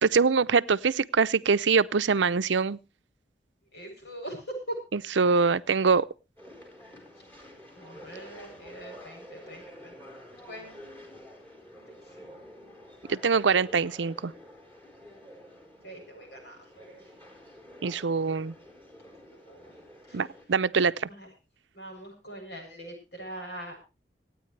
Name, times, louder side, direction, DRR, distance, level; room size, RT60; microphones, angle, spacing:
voice 1, 0.0-2.8 5.2-6.1 13.1-14.3 17.8-18.5 20.1-21.1, right 5 dB, 85° right, 0.6 m, -24 dB
voice 2, 3.7-4.8 7.8-9.9 10.5-11.0 11.9-12.4 15.8-17.0 19.3-19.8 20.1-20.2 21.0-21.3 21.7-23.8, right 1 dB, 65° left, 7.7 m, -42 dB
sound 1, 6.4-20.4, equal, 10° left, 4.4 m, -49 dB
26.0 x 9.4 x 3.3 m
head